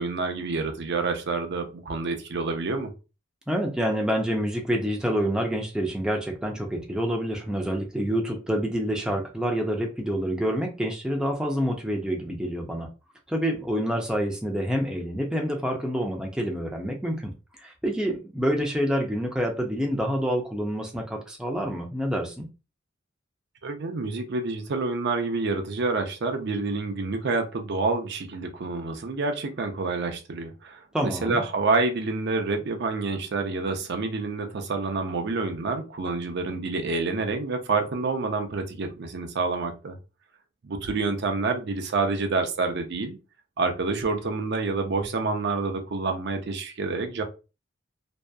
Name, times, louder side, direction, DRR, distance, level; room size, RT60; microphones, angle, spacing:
voice 1, 0.0-2.9 23.6-40.0 40.6-43.2 43.6-47.2, right 3 dB, 60° right, 0.5 m, -28 dB
voice 2, 3.5-12.9 13.3-17.3 17.6-22.5 30.9-31.4, equal, 5° right, 0.4 m, -27 dB
2.7 x 2.3 x 2.2 m
head